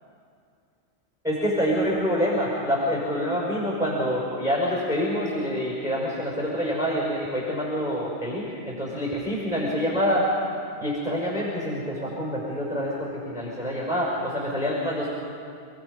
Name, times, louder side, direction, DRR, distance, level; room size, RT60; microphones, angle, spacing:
voice 1, 1.2-10.3 10.8-15.1, equal, 5° right, -5 dB, 5.7 m, -26 dB
28.5 x 20.0 x 5.5 m, 2.3 s
omnidirectional pair, 1.1 m